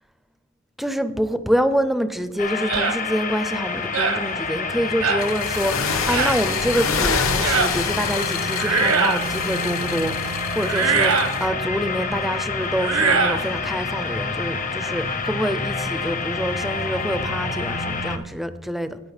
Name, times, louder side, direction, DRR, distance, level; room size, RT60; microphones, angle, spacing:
voice 1, 0.8-11.1 11.4-19.0, equal, ahead, 0.4 m, -26 dB
sound 1, 2.4-18.2, left 4 dB, 40° left, 0.7 m, -28 dB
sound 2, 2.7-3.0 3.9-4.2 5.0-5.3 6.1-6.4 7.4-7.7 8.5-9.3 10.6-11.4 12.8-13.4, right 4 dB, 90° right, 1.1 m, -21 dB
sound 3, 5.2-11.5, left 5 dB, 80° left, 0.9 m, -27 dB
16.5 x 5.6 x 3.2 m
head